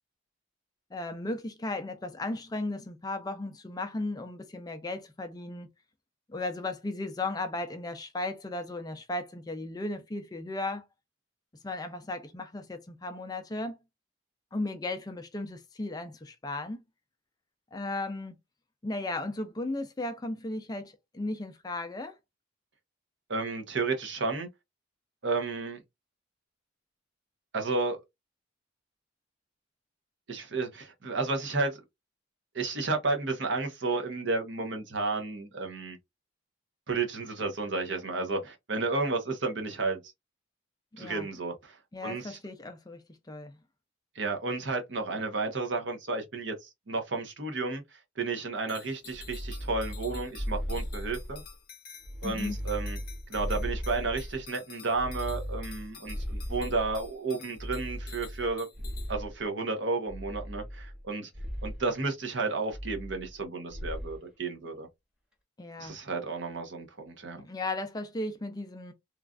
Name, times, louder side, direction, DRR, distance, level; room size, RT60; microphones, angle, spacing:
voice 1, 0.9-5.7 6.3-10.8 11.6-13.8 14.5-16.8 17.7-18.4 18.8-22.2 41.0-41.3 41.9-43.0 43.3-43.6 52.2-52.6 65.6-66.0 67.4-68.9, left 2 dB, 20° left, 0.4 m, -35 dB
voice 2, 23.3-24.5 25.2-25.8 27.5-28.0 30.3-31.8 32.5-36.0 36.9-40.0 41.0-42.4 44.1-47.8 48.2-51.4 52.2-53.0 53.3-58.7 59.1-61.3 61.6-64.9 65.8-67.4, right 3 dB, 60° right, 0.8 m, -32 dB
sound 1, 48.7-59.1, left 7 dB, 45° left, 0.8 m, -50 dB
sound 2, 49.1-51.5 52.0-54.4 54.9-57.1 57.6-59.4 60.1-61.0 61.3-61.8 62.7-63.4 63.7-64.2, equal, 5° right, 1.0 m, -37 dB
3.1 x 2.4 x 2.3 m
head